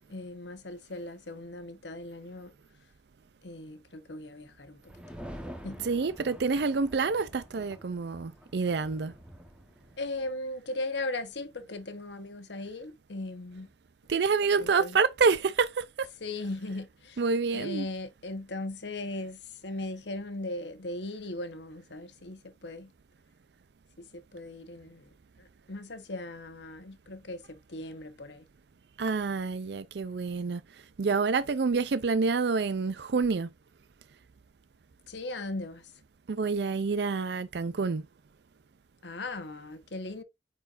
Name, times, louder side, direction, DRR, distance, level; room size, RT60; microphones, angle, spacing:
voice 1, 0.1-2.5 3.4-4.8 5.6-5.9 10.0-13.7 14.6-15.0 16.2-17.2 17.5-22.9 24.0-28.5 35.1-35.9 39.0-40.2, left 2 dB, 75° left, 1.1 m, -38 dB
sound 1, 4.9-10.3, equal, 5° right, 1.1 m, -47 dB
voice 2, 5.8-9.1 14.1-16.1 17.2-17.8 29.0-30.6 31.0-33.5 36.3-38.0, right 4 dB, 65° right, 0.5 m, -27 dB
9.1 x 4.4 x 2.5 m
head